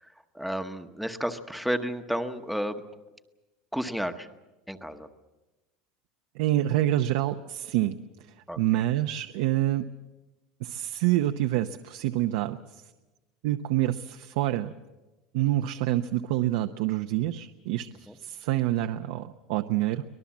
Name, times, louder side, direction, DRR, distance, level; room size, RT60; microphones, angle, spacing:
voice 1, 0.0-2.8 3.7-4.3 4.7-5.1 8.5-8.6 18.1-18.2, equal, ahead, 7 dB, 1.0 m, -32 dB
voice 2, 6.3-8.0 8.6-9.9 10.6-12.6 13.4-14.7 15.3-20.0, right 14 dB, 70° right, 7 dB, 0.8 m, -27 dB
24.5 x 19.5 x 7.3 m, 1.1 s
cardioid pair, 175°, 0 cm